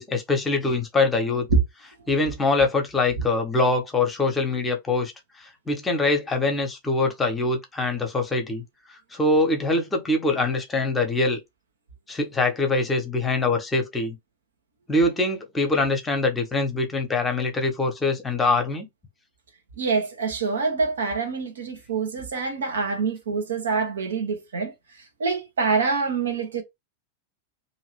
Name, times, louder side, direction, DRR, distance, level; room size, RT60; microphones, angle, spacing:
voice 1, 0.0-1.5 2.1-5.1 5.4-8.6 8.9-11.4 12.1-14.2 14.9-18.9, left 2 dB, 15° left, 1.0 m, -23 dB
voice 2, 19.8-24.7 25.2-26.6, right 4 dB, 65° right, 1.1 m, -25 dB
2.8 x 2.7 x 3.2 m
figure-of-eight pair, 90°, 0 cm